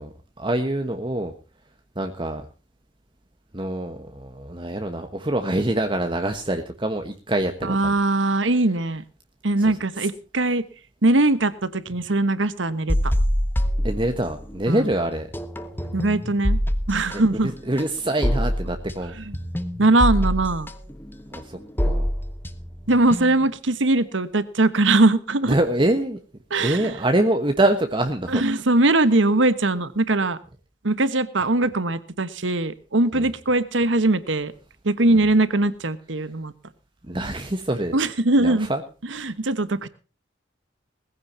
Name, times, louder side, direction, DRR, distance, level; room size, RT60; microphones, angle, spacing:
voice 1, 0.0-1.3 1.9-2.4 3.5-7.9 13.8-15.3 17.1-19.1 21.3-22.1 25.5-26.2 26.6-28.4 33.1-33.3 35.1-35.3 37.1-37.9 38.4-38.8, right 1 dB, 25° right, 6 dB, 1.2 m, -25 dB
voice 2, 7.6-9.0 9.4-10.6 11.0-13.1 14.7-14.9 15.9-16.6 16.9-17.5 19.2-19.3 19.8-20.7 22.9-25.5 26.5-26.9 28.3-30.4 30.8-34.5 34.8-36.5 37.9-38.7 39.1-39.9, right 2 dB, 85° right, 14 dB, 1.3 m, -21 dB
sound 1, 12.9-14.6 14.9-23.6, equal, 10° left, 1.3 m, -25 dB
20.5 x 15.0 x 2.8 m, 0.35 s
head